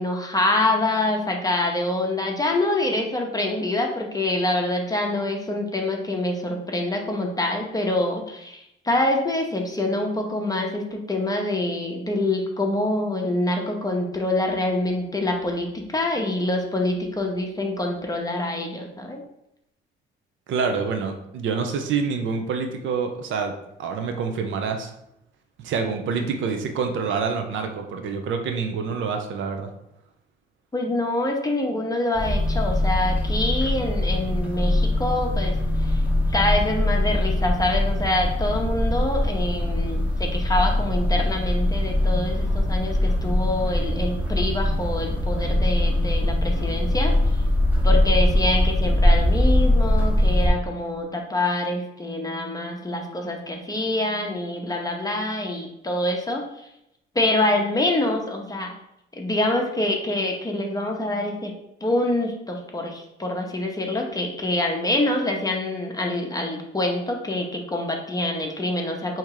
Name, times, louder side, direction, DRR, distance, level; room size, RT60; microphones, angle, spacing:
voice 1, 0.0-19.2 30.7-36.0 36.3-47.1 47.8-56.4 57.1-58.7 59.2-61.5 61.8-69.2, left 1 dB, 20° left, 1 dB, 0.7 m, -25 dB
voice 2, 20.5-23.5 23.8-24.9 25.6-29.7, right 5 dB, 75° right, 5 dB, 0.7 m, -27 dB
sound 1, 32.2-50.5, left 1 dB, 5° right, 0.9 m, -22 dB
3.5 x 2.9 x 4.7 m, 0.81 s
cardioid pair, 90°, 20 cm